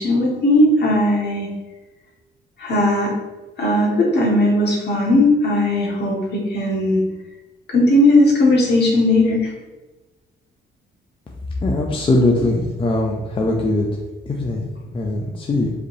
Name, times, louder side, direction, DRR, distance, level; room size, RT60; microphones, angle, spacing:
voice 1, 0.0-1.5 2.6-3.1 3.6-7.0 7.7-9.5, left 1 dB, 55° left, -3 dB, 1.5 m, -17 dB
voice 2, 11.6-13.9 14.3-15.7, left 2 dB, 25° left, -1 dB, 0.6 m, -21 dB
5.0 x 3.1 x 2.7 m, 1.1 s
cardioid pair, 90°, 20 cm